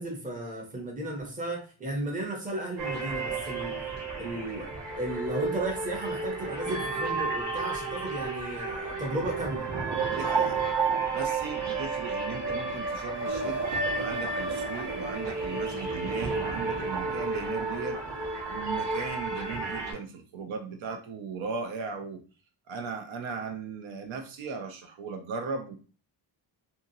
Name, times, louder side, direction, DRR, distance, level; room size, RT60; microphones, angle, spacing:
voice 1, 0.0-3.7 4.2-9.7, right 1 dB, 20° right, 0 dB, 0.6 m, -34 dB
sound 1, 2.8-19.9, right 3 dB, 65° right, 0.9 m, -31 dB
voice 2, 10.1-10.6 11.1-13.6 14.0-18.0 18.5-22.2 22.7-25.8, right 5 dB, 85° right, 5 dB, 0.7 m, -37 dB
2.8 x 2.7 x 2.6 m, 0.36 s
wide cardioid pair, 165°, 45 cm